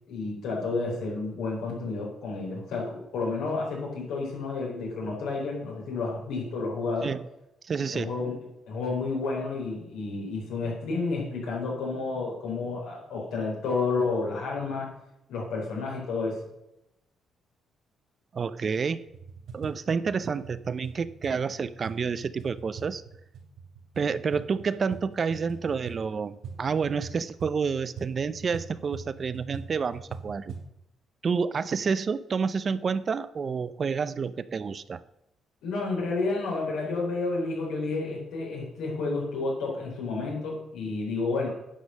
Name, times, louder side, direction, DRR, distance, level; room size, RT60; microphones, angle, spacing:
voice 1, 0.1-7.1 7.9-8.4 8.7-14.9 15.3-16.4 35.6-41.5, left 3 dB, 85° left, -2 dB, 4.1 m, -30 dB
voice 2, 7.6-8.1 18.3-19.0 19.5-23.0 24.0-30.6 31.2-35.0, right 5 dB, 45° right, 15 dB, 0.5 m, -29 dB
sound 1, 19.1-30.7, right 5 dB, 80° right, 2.7 m, -43 dB
10.0 x 5.3 x 6.5 m, 0.87 s
cardioid pair, 90°, 0 cm